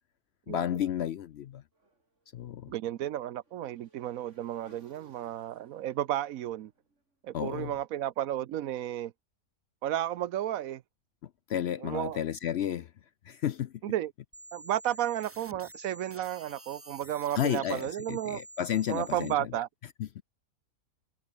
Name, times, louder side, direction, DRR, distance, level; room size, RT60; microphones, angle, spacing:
voice 1, 0.5-1.6 2.3-2.7 7.3-7.7 11.5-12.9 13.2-13.7 17.4-19.5 20.0-20.2, left 10 dB, 65° left, 0.7 m, -32 dB
Motorcycle / Engine, 1.7-7.9, right 2 dB, 55° right, 4.8 m, -64 dB
voice 2, 2.7-6.7 7.2-9.1 9.8-10.8 11.8-12.2 13.8-14.1 14.5-18.4 18.9-19.7, right 12 dB, 75° right, 1.1 m, -33 dB
sound 1, 14.3-19.3, right 1 dB, 10° right, 1.2 m, -49 dB
omnidirectional pair, 1.5 m